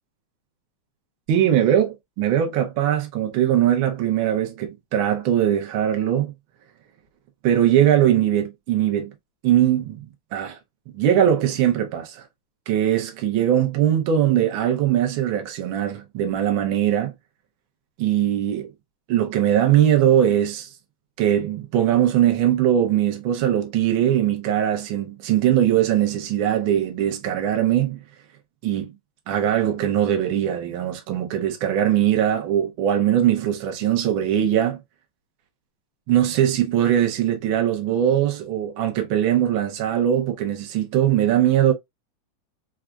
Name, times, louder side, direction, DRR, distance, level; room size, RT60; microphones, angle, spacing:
voice 1, 1.3-6.3 7.4-9.1 9.4-10.0 10.3-10.6 10.9-12.2 12.7-17.1 18.0-18.7 19.1-20.7 21.2-28.0 28.6-29.0 29.3-34.8 36.1-41.7, right 10 dB, 80° right, 1.1 m, -21 dB
4.8 x 2.4 x 2.3 m
omnidirectional pair, 3.4 m